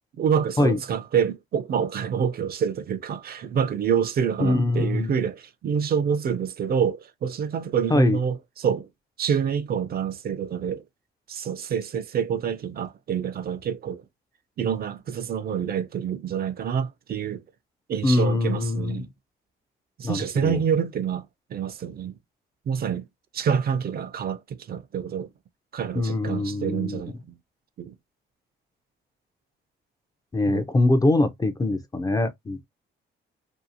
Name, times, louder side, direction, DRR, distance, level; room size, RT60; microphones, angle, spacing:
voice 1, 0.1-8.9 9.2-10.8 11.3-14.0 14.6-17.4 17.9-19.1 20.0-22.2 22.7-23.0 23.3-25.3 25.7-27.4 27.8-27.9 30.5-30.6, right 7 dB, 50° right, 0.5 m, -27 dB
voice 2, 4.4-5.1 7.9-8.2 18.0-19.0 20.0-20.6 26.0-27.0 30.3-32.7, left 2 dB, 20° left, 0.4 m, -23 dB
2.7 x 2.3 x 2.5 m
cardioid pair, 90°, 20 cm